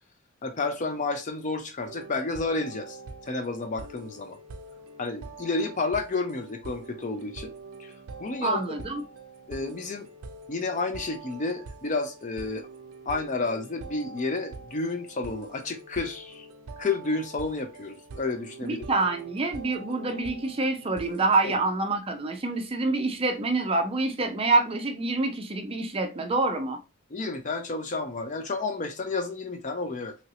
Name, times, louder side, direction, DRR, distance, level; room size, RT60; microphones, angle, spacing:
voice 1, 0.4-4.4 5.0-7.5 7.8-7.9 8.2-8.8 9.5-10.1 10.5-12.7 13.1-16.4 16.8-18.9 21.4-21.6 27.1-30.2, left 3 dB, 35° left, 0.5 m, -31 dB
sound 1, 1.8-21.6, right 3 dB, 80° right, 0.5 m, -44 dB
voice 2, 8.4-9.0 18.6-26.8, right 3 dB, 25° right, 0.4 m, -26 dB
3.1 x 2.6 x 2.7 m
head